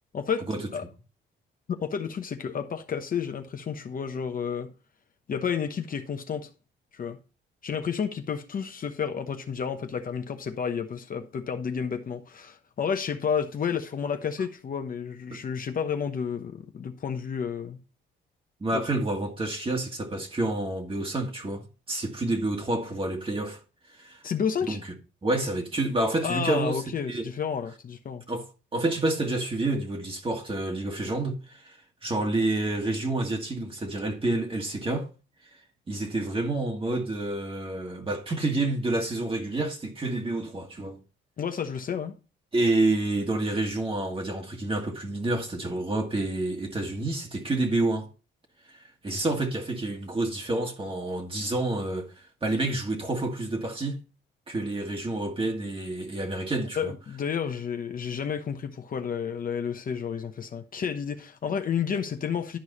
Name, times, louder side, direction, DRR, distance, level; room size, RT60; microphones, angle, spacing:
voice 1, 0.1-0.8 1.7-4.7 5.3-6.5 6.9-7.2 7.6-17.8 18.7-18.8 24.2-24.8 26.2-28.2 41.4-42.1 56.8-62.6, left 7 dB, 45° left, 1.0 m, -31 dB
voice 2, 18.6-23.6 23.9-24.2 24.7-24.9 25.2-26.8 27.1-27.3 28.3-28.5 28.7-35.1 35.4-35.6 35.9-41.0 42.5-48.1 48.7-54.0 54.5-56.9, right 2 dB, 25° right, 1.8 m, -29 dB
11.5 x 4.7 x 4.1 m
cardioid pair, 90°, 20 cm